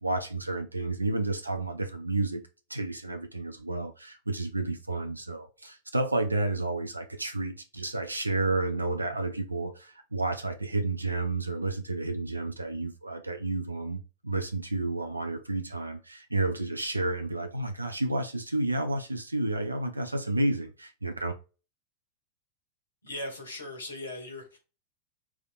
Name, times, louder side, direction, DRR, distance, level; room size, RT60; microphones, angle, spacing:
voice 1, 0.0-2.4 2.7-21.3, right 2 dB, 80° right, 0.5 m, -31 dB
voice 2, 23.0-24.6, left 1 dB, 75° left, 1.9 m, -38 dB
6.2 x 3.4 x 2.4 m
figure-of-eight pair, 90°, 0 cm